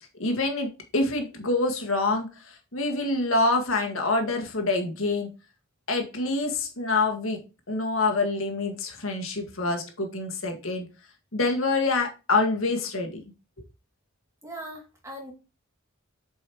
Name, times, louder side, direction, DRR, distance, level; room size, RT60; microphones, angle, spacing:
voice 1, 0.2-2.3 2.7-5.3 5.9-7.4 7.7-10.9 11.3-13.1, left 3 dB, 65° left, 3 dB, 1.8 m, -26 dB
voice 2, 14.4-15.3, right 1 dB, 15° right, 0 dB, 2.5 m, -40 dB
8.0 x 5.4 x 3.0 m, 0.29 s
head